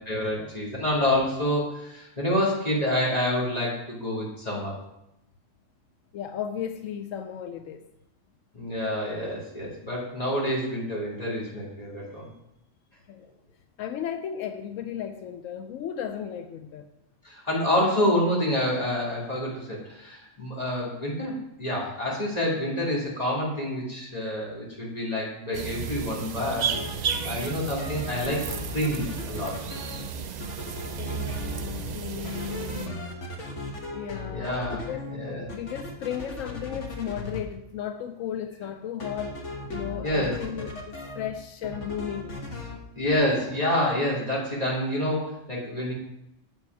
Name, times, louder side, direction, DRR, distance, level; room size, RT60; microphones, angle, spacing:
voice 1, 0.0-4.7 8.5-12.3 17.2-26.7 27.2-28.4 28.7-29.6 34.3-34.8 35.1-35.4 40.0-40.4 42.9-45.9, left 1 dB, 30° left, -5 dB, 2.8 m, -27 dB
voice 2, 6.1-7.9 13.1-13.3 13.8-16.9 30.6-33.3 33.9-35.0 35.5-42.4, left 9 dB, 85° left, 8 dB, 1.0 m, -35 dB
sound 1, 25.5-32.9, right 7 dB, 80° right, 0.3 m, -33 dB
sound 2, 26.7-27.5 27.8-30.1 30.4-32.0 32.2-37.4 39.0-41.3 41.6-42.8, left 2 dB, 65° left, 1.7 m, -37 dB
7.7 x 7.6 x 4.7 m, 0.84 s
omnidirectional pair, 1.3 m